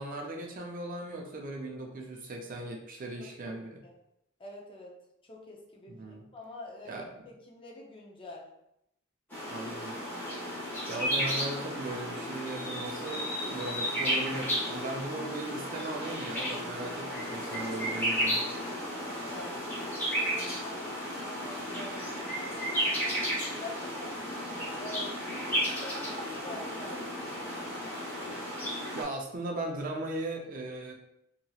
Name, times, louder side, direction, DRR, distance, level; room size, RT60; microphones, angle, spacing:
voice 1, 0.0-3.8 5.9-6.2 6.9-7.3 9.5-10.0 10.9-18.4 24.6-24.8 28.9-30.9, right 2 dB, 40° right, 1 dB, 0.4 m, -38 dB
voice 2, 3.2-3.6 3.8-3.9 4.4-8.5 18.7-24.4 24.8-26.1 26.4-27.5, left 2 dB, 25° left, -2 dB, 0.5 m, -47 dB
sound 1, 9.3-29.0, equal, 10° left, 1.1 m, -33 dB
2.9 x 2.8 x 2.3 m, 0.80 s
head